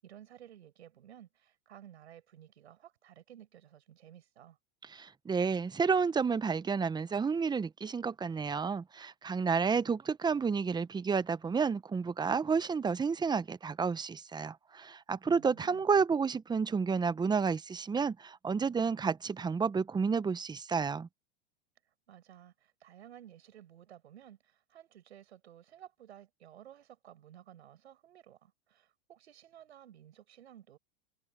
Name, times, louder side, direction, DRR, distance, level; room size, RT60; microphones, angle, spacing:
voice 1, 0.0-4.6 15.2-15.9 22.1-30.8, right 11 dB, 90° right, 7.5 m, -55 dB
voice 2, 4.9-21.1, right 5 dB, 15° right, 0.9 m, -31 dB
hypercardioid pair, 115°, 32 cm